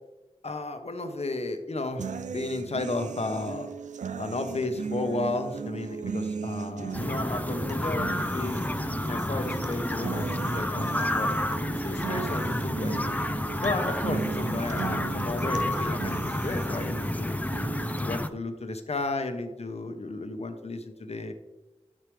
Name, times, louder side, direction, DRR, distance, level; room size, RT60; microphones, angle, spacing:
voice 1, 0.4-3.7 4.1-8.6 9.0-11.3 11.7-13.0 13.6-17.4 18.0-21.3, left 2 dB, 60° left, 7 dB, 1.0 m, -33 dB
sound 1, 2.0-18.0, right 6 dB, 90° right, 0.4 m, -37 dB
sound 2, 6.9-18.3, left 1 dB, 15° left, 0.5 m, -30 dB
11.5 x 6.5 x 3.3 m, 1.1 s
cardioid pair, 40°, 12 cm